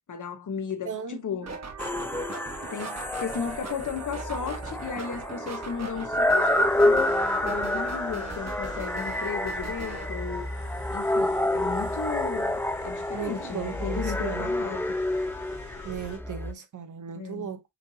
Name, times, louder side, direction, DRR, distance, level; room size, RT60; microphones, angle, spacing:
voice 1, 0.1-1.6 2.7-7.1 7.4-10.5 10.9-14.8 17.1-17.5, left 6 dB, 90° left, 0.9 m, -35 dB
voice 2, 0.8-1.2 13.1-14.5 15.8-17.6, right 7 dB, 85° right, 0.8 m, -36 dB
sound 1, 1.4-10.1, right 4 dB, 60° right, 1.4 m, -40 dB
sound 2, 1.8-16.5, left 1 dB, 5° left, 0.6 m, -28 dB
sound 3, 6.5-16.2, left 3 dB, 70° left, 2.3 m, -45 dB
5.9 x 2.7 x 2.7 m
wide cardioid pair, 70°, 30 cm